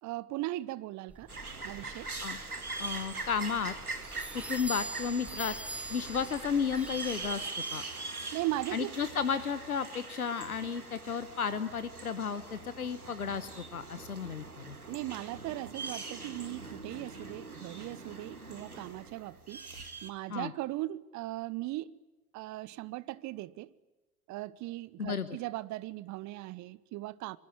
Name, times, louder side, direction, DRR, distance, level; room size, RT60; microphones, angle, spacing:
voice 1, 0.0-1.3 1.6-2.1 8.3-8.9 14.9-19.6 20.0-21.9 22.3-23.7 24.3-27.4, right 17 dB, 40° right, 1.1 m, -38 dB
sound 1, 1.1-7.5, right 2 dB, 5° right, 1.1 m, -45 dB
sound 2, 1.3-20.1, right 3 dB, 90° right, 2.1 m, -42 dB
voice 2, 2.8-3.7 4.3-5.5 5.9-7.8 8.7-14.8 20.3-20.5 25.0-25.3, left 6 dB, 85° left, 1.1 m, -33 dB
27.0 x 23.5 x 8.8 m
figure-of-eight pair, 70°, 43 cm